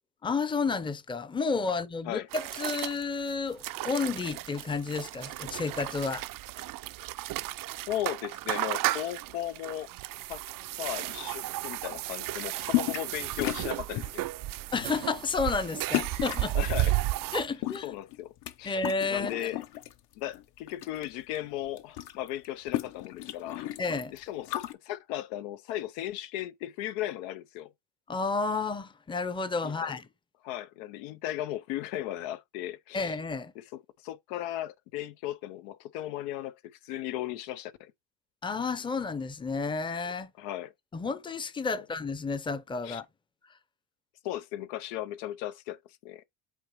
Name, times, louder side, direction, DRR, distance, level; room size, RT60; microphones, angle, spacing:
voice 1, 0.2-6.2 14.7-16.5 17.3-17.9 18.6-19.5 23.8-24.1 28.1-30.1 32.9-33.5 38.4-40.3 40.9-43.1, left 4 dB, 10° left, 0.6 m, -31 dB
sound 1, 2.3-17.5, right 16 dB, 45° right, 0.5 m, -34 dB
voice 2, 7.9-9.9 10.3-10.4 10.8-14.2 16.5-16.9 17.8-18.3 18.6-18.8 19.1-19.6 20.2-23.7 24.1-27.7 29.6-30.0 30.4-33.1 33.7-37.9 40.4-40.7 42.8-43.0 44.2-46.2, left 13 dB, 90° left, 0.7 m, -36 dB
sound 2, 12.7-13.1 13.4-14.2 14.8-15.0 15.9-16.5 17.4-18.5 18.8-19.9 20.3-21.1 21.3-21.4 21.7-24.7, left 15 dB, 60° left, 0.8 m, -33 dB
8.3 x 3.7 x 3.0 m
supercardioid pair, 95°, 46 cm